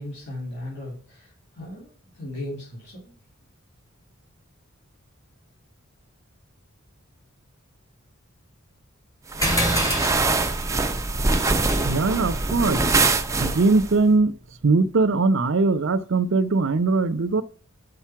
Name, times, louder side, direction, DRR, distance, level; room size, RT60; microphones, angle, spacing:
voice 1, 0.0-3.1, left 1 dB, 55° left, 3.0 m, -37 dB
sound 1, 9.3-13.9, right 3 dB, 15° right, 0.5 m, -23 dB
sound 2, 9.4-14.3, equal, 15° left, 2.2 m, -31 dB
voice 2, 11.8-12.8 13.4-14.3 14.6-17.4, right 3 dB, 60° right, 0.6 m, -20 dB
5.9 x 5.4 x 5.7 m
head